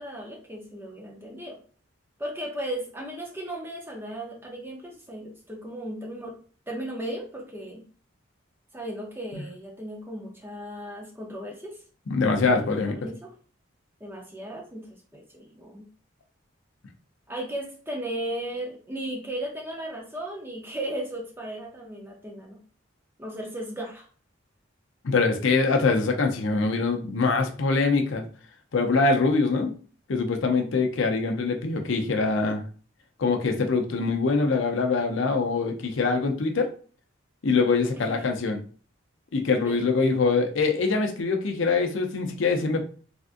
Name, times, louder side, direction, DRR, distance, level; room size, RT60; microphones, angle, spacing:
voice 1, 0.0-1.6 2.2-6.3 6.7-7.8 8.7-11.8 12.4-13.3 14.0-15.9 17.3-22.6 23.2-24.1 37.9-38.2 39.6-40.1, right 1 dB, 10° right, -1 dB, 0.6 m, -36 dB
voice 2, 12.1-13.0 25.0-28.3 28.7-29.7 30.1-32.6 33.2-36.7 37.4-38.6 39.3-42.8, left 4 dB, 65° left, 4 dB, 0.5 m, -24 dB
3.4 x 2.5 x 2.5 m, 0.40 s
head